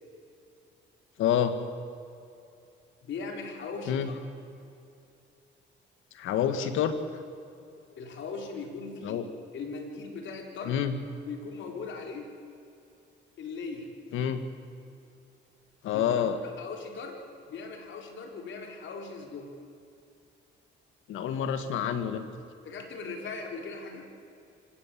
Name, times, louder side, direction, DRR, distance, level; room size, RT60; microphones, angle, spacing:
voice 1, 1.2-1.5 3.9-4.1 6.1-7.0 9.0-9.3 10.7-11.0 14.1-14.4 15.8-16.4 21.1-22.2, left 9 dB, 85° left, 9 dB, 2.0 m, -27 dB
voice 2, 3.0-4.2 8.0-9.2 9.5-10.8 11.2-12.3 13.4-13.9 15.9-16.0 16.4-19.5 22.6-24.1, left 4 dB, 70° left, 3 dB, 4.2 m, -39 dB
26.0 x 18.0 x 7.6 m, 2.6 s
cardioid pair, 90°, 20 cm